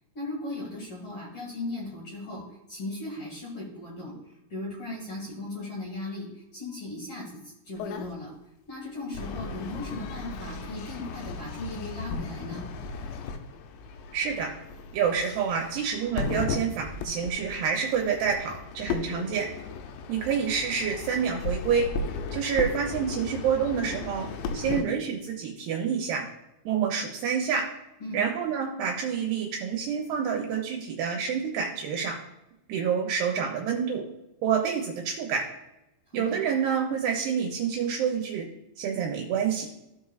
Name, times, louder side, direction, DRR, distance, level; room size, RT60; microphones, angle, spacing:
voice 1, 0.1-2.4 2.7-8.3 8.7-12.6 28.0-28.2 36.1-36.4, left 2 dB, 45° left, -5 dB, 2.0 m, -37 dB
sound 1, 7.8-8.1 9.1-24.8, left 4 dB, 85° left, 2.8 m, -36 dB
voice 2, 14.1-14.5 14.9-19.5 20.1-21.9 22.3-24.3 24.5-26.2 26.7-27.7 28.1-32.2 32.7-34.0 34.4-35.4 36.1-38.5 38.8-39.7, right 7 dB, 75° right, 0 dB, 2.6 m, -28 dB
15.0 x 5.4 x 2.4 m, 0.91 s
omnidirectional pair, 5.1 m